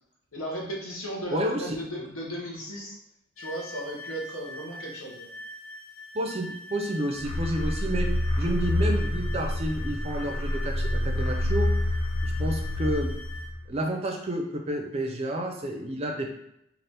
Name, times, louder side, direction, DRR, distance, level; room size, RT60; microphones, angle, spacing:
voice 1, 0.3-3.0 3.4-5.3, right 1 dB, 85° left, -2 dB, 0.9 m, -36 dB
voice 2, 1.3-1.8 6.1-8.1 8.4-11.7 12.2-13.1 13.7-16.3, right 1 dB, 30° right, 2 dB, 0.4 m, -30 dB
sound 1, 3.4-13.5, left 2 dB, 70° left, 0.5 m, -43 dB
sound 2, 7.2-13.7, left 1 dB, 90° right, 0.5 m, -27 dB
2.7 x 2.4 x 3.3 m, 0.80 s
head